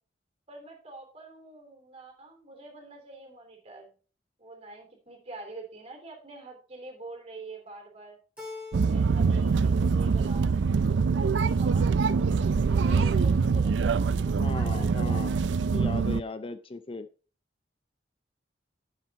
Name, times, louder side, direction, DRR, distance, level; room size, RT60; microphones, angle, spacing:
voice 1, 0.5-3.9 4.4-8.2 8.9-10.6 11.1-12.0 12.8-15.4, right 2 dB, 35° right, 2 dB, 3.2 m, -46 dB
Keyboard (musical), 8.4-9.5 9.8-10.5, left 3 dB, 5° right, 3.0 m, -45 dB
sound 1, 8.7-16.2, right 5 dB, 75° right, 0.4 m, -24 dB
sound 2, 11.2-14.3, right 2 dB, 55° right, 1.5 m, -43 dB
voice 2, 14.4-15.3 15.7-17.1, left 3 dB, 30° left, 11 dB, 0.5 m, -37 dB
9.8 x 7.3 x 4.1 m, 0.35 s
head